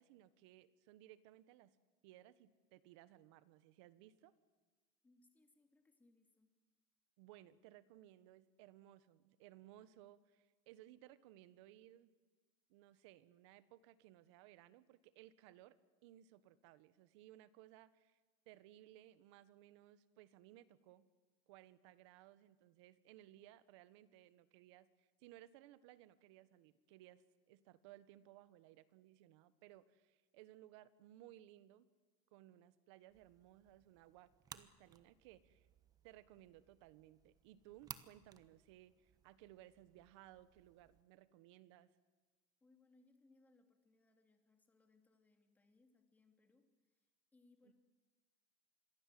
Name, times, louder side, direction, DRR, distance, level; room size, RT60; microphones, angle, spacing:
voice 1, 0.0-1.8 2.0-4.3 7.2-12.1 12.7-15.8 16.0-18.2 18.5-21.1 21.5-31.9 32.3-35.7 36.0-41.9 47.7-47.8, right 14 dB, 75° right, 15 dB, 1.3 m, -61 dB
voice 2, 5.0-6.5 42.6-47.7, left 3 dB, 10° left, 5 dB, 2.7 m, -72 dB
sound 1, 33.1-41.0, right 7 dB, 25° right, 1.1 m, -60 dB
26.5 x 22.0 x 7.7 m, 1.3 s
supercardioid pair, 150°, 15 cm